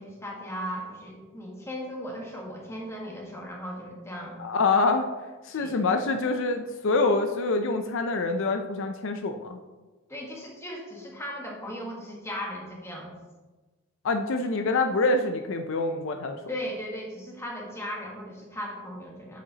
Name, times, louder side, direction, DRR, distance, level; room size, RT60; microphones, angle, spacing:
voice 1, 0.0-4.4 5.5-5.8 10.1-13.1 16.5-19.4, equal, 15° left, -1 dB, 1.4 m, -37 dB
voice 2, 4.4-5.1 5.4-9.6 14.0-16.4, left 3 dB, 65° left, 6 dB, 0.5 m, -25 dB
8.7 x 7.2 x 2.9 m, 1.2 s
head